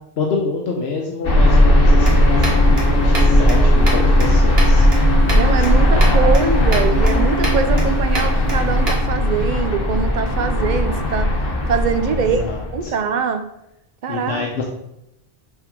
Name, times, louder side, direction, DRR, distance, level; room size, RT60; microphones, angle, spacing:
voice 1, 0.2-4.9 5.7-6.5 12.1-13.0 14.1-14.6, left 4 dB, 80° left, 0 dB, 1.1 m, -27 dB
sound 1, 1.2-12.8, left 1 dB, 60° left, 1.3 m, -16 dB
sound 2, 2.0-9.1, equal, 70° right, 1.9 m, -29 dB
voice 2, 5.3-11.4 11.7-12.5 12.7-13.5 14.0-14.6, right 6 dB, 55° right, 10 dB, 0.6 m, -23 dB
6.3 x 3.7 x 5.1 m, 0.84 s
omnidirectional pair, 1.1 m